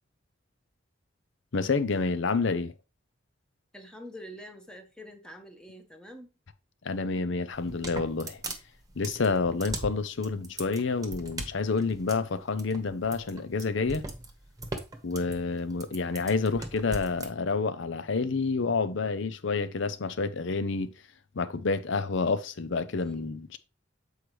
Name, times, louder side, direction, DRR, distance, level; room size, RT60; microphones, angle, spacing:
voice 1, 1.5-2.7 6.8-8.4 9.0-14.0 15.0-20.9 21.3-23.6, left 4 dB, 70° left, 0.7 m, -29 dB
voice 2, 3.7-6.3 22.9-23.3, equal, 5° left, 1.0 m, -46 dB
sound 1, 7.5-17.3, right 2 dB, 20° right, 1.1 m, -39 dB
8.0 x 4.9 x 3.2 m
head